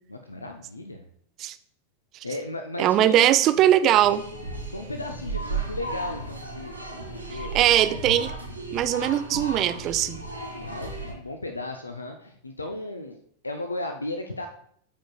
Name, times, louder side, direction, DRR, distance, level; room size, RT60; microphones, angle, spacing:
voice 1, 0.1-1.1 2.2-3.8 4.7-7.9 10.5-13.2 13.4-14.5, left 2 dB, 80° left, 5 dB, 0.5 m, -36 dB
voice 2, 2.8-4.2 7.3-8.3 8.7-10.2, right 12 dB, 35° right, 12 dB, 0.5 m, -21 dB
sound 1, 3.9-11.1, right 2 dB, 90° right, 1.6 m, -34 dB
12.5 x 5.1 x 2.3 m, 0.64 s
figure-of-eight pair, 90°, 0 cm